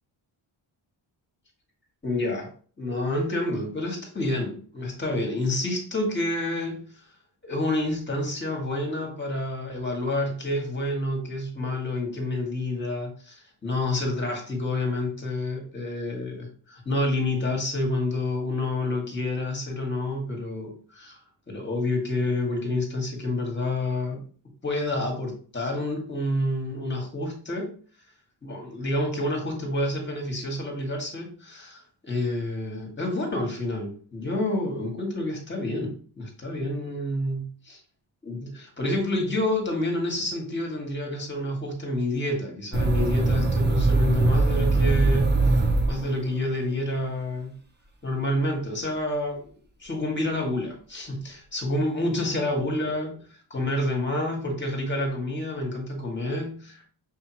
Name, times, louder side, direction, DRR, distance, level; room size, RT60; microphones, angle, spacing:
voice 1, 2.0-2.5 2.8-7.0 7.4-21.2 21.5-24.2 24.6-27.7 28.4-37.8 38.2-47.5 48.0-49.4 49.8-56.8, left 1 dB, 20° left, 2 dB, 1.6 m, -28 dB
sound 1, 42.7-46.5, right 2 dB, 20° right, 0.8 m, -21 dB
5.5 x 2.8 x 2.9 m, 0.43 s
cardioid pair, 85°, 49 cm